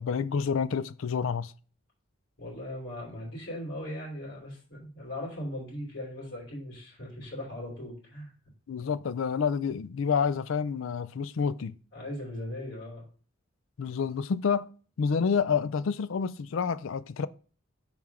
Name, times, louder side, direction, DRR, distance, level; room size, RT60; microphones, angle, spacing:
voice 1, 0.0-1.5 8.7-11.7 13.8-14.7 15.0-17.3, left 6 dB, 75° left, 0.4 m, -28 dB
voice 2, 2.4-8.3 11.9-13.1, left 1 dB, 55° left, 3.0 m, -39 dB
5.6 x 4.5 x 4.8 m
head